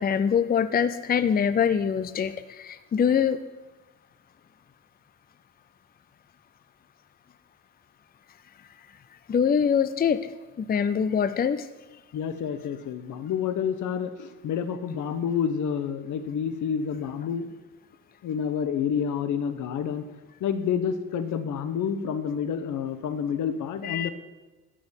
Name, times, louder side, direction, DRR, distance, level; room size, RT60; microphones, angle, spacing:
voice 1, 0.0-3.4 9.3-10.3 10.6-11.7 23.8-24.1, left 7 dB, 30° left, 13 dB, 0.5 m, -24 dB
voice 2, 12.1-17.5 18.2-20.0 20.4-24.1, left 7 dB, 75° left, 11 dB, 1.2 m, -29 dB
12.5 x 6.2 x 7.0 m, 1.2 s
cardioid pair, 90°, 30 cm